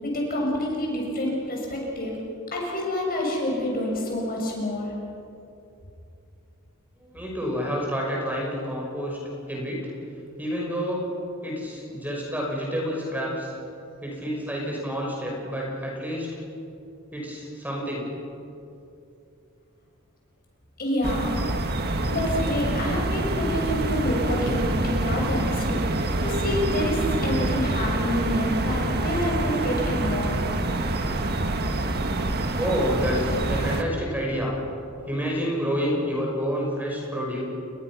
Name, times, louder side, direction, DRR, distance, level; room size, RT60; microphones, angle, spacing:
voice 1, 0.0-2.2 2.5-4.9 20.8-21.4 22.0-25.9 26.2-30.4, left 1 dB, 45° left, -1 dB, 6.7 m, -28 dB
voice 2, 7.0-9.2 9.5-9.9 10.4-11.1 11.4-13.5 14.0-16.3 17.1-18.0 32.6-34.6 35.0-37.4, equal, 10° right, -2 dB, 5.6 m, -28 dB
sound 1, 21.0-33.8, right 2 dB, 50° right, 1.7 m, -26 dB
30.0 x 22.0 x 6.2 m, 2.7 s
head